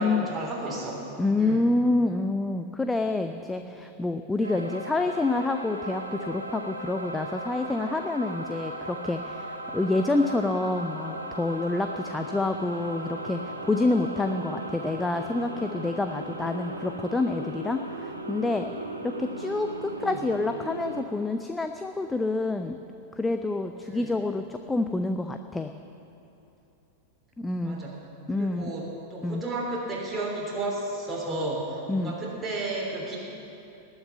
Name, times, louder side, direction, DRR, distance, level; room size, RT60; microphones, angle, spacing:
voice 1, 0.0-1.0 1.4-1.6 4.4-4.6 19.9-20.2 23.9-24.1 27.6-27.9 28.3-33.2, right 2 dB, 15° right, -5 dB, 3.4 m, -33 dB
voice 2, 1.2-18.7 19.0-22.8 23.2-25.7 27.4-27.8 28.3-28.7 29.2-29.4 31.9-32.2, left 2 dB, 10° left, 7 dB, 0.5 m, -28 dB
sound 1, 4.4-21.0, right 1 dB, 85° right, 1.2 m, -37 dB
19.0 x 6.5 x 9.4 m, 2.9 s
figure-of-eight pair, 90°, 0 cm